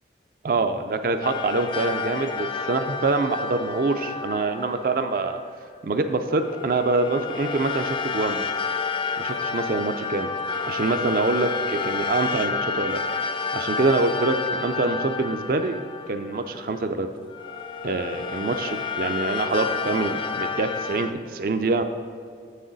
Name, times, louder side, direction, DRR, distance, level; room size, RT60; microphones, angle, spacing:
voice 1, 0.4-5.4 5.8-8.5 9.2-10.3 10.7-13.0 13.5-15.8 16.1-17.1 17.8-21.8, right 3 dB, 55° right, 8 dB, 0.4 m, -25 dB
sound 1, 1.2-5.4 6.3-16.8 17.3-21.1, left 5 dB, 30° left, 0.3 m, -30 dB
7.5 x 6.3 x 3.9 m, 2.2 s
head